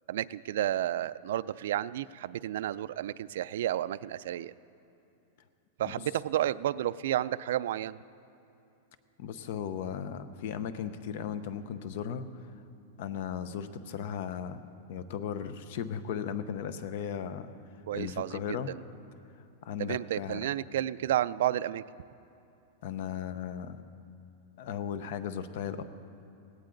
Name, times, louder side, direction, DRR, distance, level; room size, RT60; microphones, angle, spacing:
voice 1, 0.1-4.5 5.8-8.0 17.9-18.8 19.8-21.8, right 12 dB, 65° right, 15 dB, 0.3 m, -31 dB
voice 2, 9.2-12.3 13.0-14.6 14.9-17.5 17.9-18.7 19.6-20.4 22.8-23.8 24.6-25.8, left 8 dB, 50° left, 12 dB, 0.7 m, -36 dB
18.0 x 17.0 x 3.9 m, 2.7 s
supercardioid pair, 170°, 0 cm